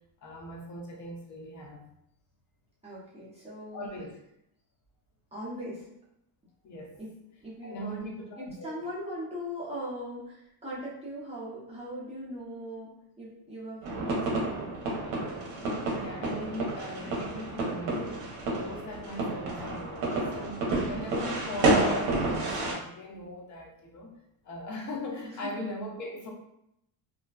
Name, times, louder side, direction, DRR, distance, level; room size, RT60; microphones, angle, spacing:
voice 1, 0.2-1.9 3.7-4.1 6.6-7.0 7.6-8.9 15.9-24.2 24.4-26.3, equal, 35° left, 0 dB, 0.5 m, -39 dB
voice 2, 2.8-3.9 5.3-5.9 7.0-7.1 7.4-8.1 8.4-12.9 13.2-14.7 25.4-25.5, equal, 15° right, -9 dB, 0.6 m, -39 dB
sound 1, 13.8-22.7, right 2 dB, 70° right, 0.8 m, -30 dB
2.6 x 2.2 x 2.3 m, 0.78 s
cardioid pair, 150°, 50 cm